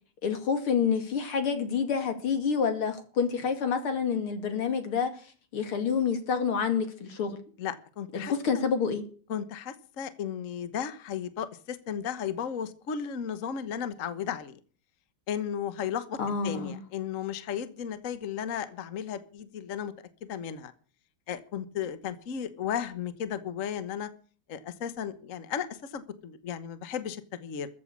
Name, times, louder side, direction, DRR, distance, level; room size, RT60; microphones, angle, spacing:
voice 1, 0.2-5.2 5.5-7.4 8.1-9.0 16.2-16.8, left 6 dB, 85° left, 8 dB, 3.2 m, -28 dB
voice 2, 7.6-8.3 9.3-14.6 15.3-16.2 16.4-19.9 20.3-20.7 21.3-24.1 24.5-27.7, left 8 dB, 45° left, 12 dB, 1.4 m, -34 dB
14.5 x 8.5 x 8.4 m, 0.41 s
omnidirectional pair, 2.3 m